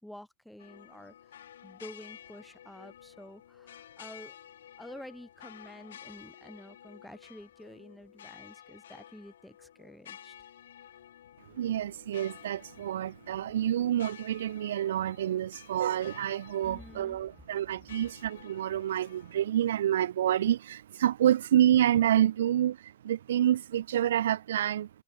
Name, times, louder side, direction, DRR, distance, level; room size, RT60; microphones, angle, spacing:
voice 1, 0.0-1.1 1.6-4.4 4.8-10.3 16.6-17.2, left 1 dB, ahead, 2.6 m, -49 dB
sound 1, 0.6-19.5, left 10 dB, 60° left, 2.3 m, -52 dB
voice 2, 11.6-24.9, right 11 dB, 60° right, 0.5 m, -28 dB
figure-of-eight pair, 90°, 0 cm